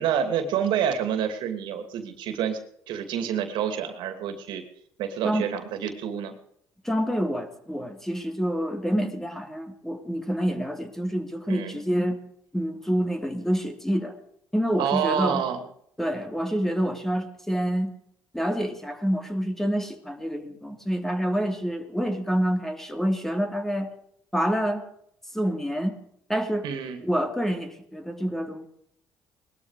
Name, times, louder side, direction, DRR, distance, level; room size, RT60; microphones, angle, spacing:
voice 1, 0.0-2.6 2.9-4.6 5.0-6.3 11.5-11.8 14.8-15.6 26.6-27.0, right 8 dB, 80° right, 8 dB, 2.7 m, -28 dB
voice 2, 6.8-12.2 12.5-14.2 14.5-15.4 16.0-17.9 18.3-23.9 24.3-24.8 25.3-26.0 26.3-26.7 27.0-28.7, equal, 5° left, 6 dB, 2.9 m, -27 dB
20.5 x 13.0 x 5.0 m, 0.70 s
cardioid pair, 85°, 8 cm